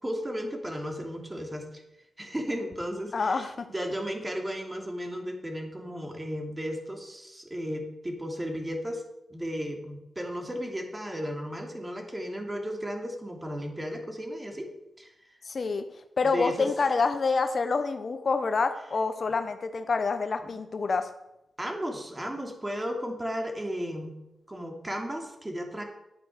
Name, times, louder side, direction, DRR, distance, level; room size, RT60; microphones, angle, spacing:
voice 1, 0.0-1.8 2.2-9.0 9.3-14.7 15.0-15.1 16.2-16.7 20.4-20.5 21.6-24.2 24.5-25.8, equal, 20° right, 3 dB, 2.8 m, -34 dB
voice 2, 3.1-3.7 15.5-15.8 16.2-21.1, left 4 dB, 55° left, 9 dB, 0.9 m, -27 dB
10.5 x 8.5 x 6.6 m, 0.87 s
cardioid pair, 55°, 0 cm